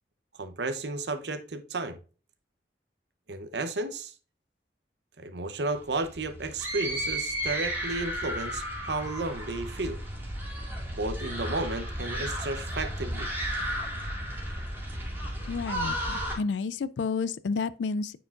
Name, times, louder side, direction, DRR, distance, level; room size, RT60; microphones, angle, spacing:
voice 1, 0.4-2.0 3.3-4.1 5.2-10.0 10.9-13.3, right 2 dB, 70° right, 0.8 m, -33 dB
sound 1, 5.7-16.4, equal, 10° right, 1.9 m, -33 dB
voice 2, 15.5-18.2, left 4 dB, 90° left, 0.4 m, -31 dB
9.0 x 4.8 x 2.4 m
head